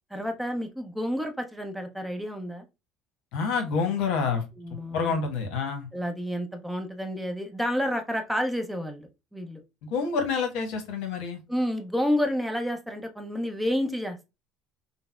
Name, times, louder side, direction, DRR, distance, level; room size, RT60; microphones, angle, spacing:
voice 1, 0.1-2.6 4.6-5.2 5.9-9.6 11.5-14.3, equal, 5° right, 4 dB, 0.7 m, -30 dB
voice 2, 3.3-4.4 4.7-5.9 9.8-11.4, left 5 dB, 70° left, 4 dB, 1.0 m, -28 dB
3.9 x 2.0 x 2.3 m, 0.25 s
hypercardioid pair, 80°, 0 cm